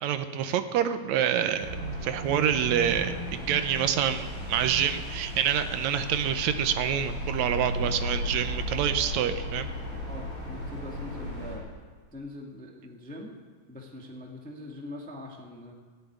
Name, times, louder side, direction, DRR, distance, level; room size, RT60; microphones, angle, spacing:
voice 1, 0.0-1.8 2.0-9.7, right 9 dB, 75° right, 9 dB, 2.0 m, -27 dB
sound 1, 1.5-11.6, equal, 45° right, 6.4 m, -35 dB
voice 2, 10.0-11.7 12.1-13.3 13.7-15.7, left 2 dB, 5° left, 0 dB, 0.9 m, -42 dB
15.5 x 7.9 x 9.4 m, 1.5 s
omnidirectional pair, 3.5 m